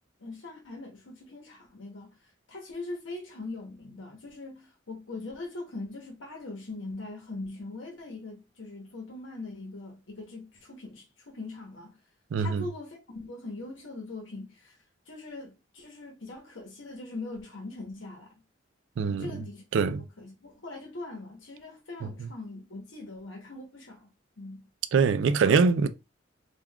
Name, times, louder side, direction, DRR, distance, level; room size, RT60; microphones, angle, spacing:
voice 1, 0.2-2.1 2.5-11.9 12.4-14.8 15.1-18.3 19.0-19.6 20.2-24.6, left 2 dB, 75° left, 0.9 m, -41 dB
voice 2, 12.3-12.7 19.0-19.4 19.7-20.0 22.2-22.3 24.9-25.9, right 5 dB, 70° right, 0.3 m, -23 dB
3.5 x 2.3 x 2.3 m
head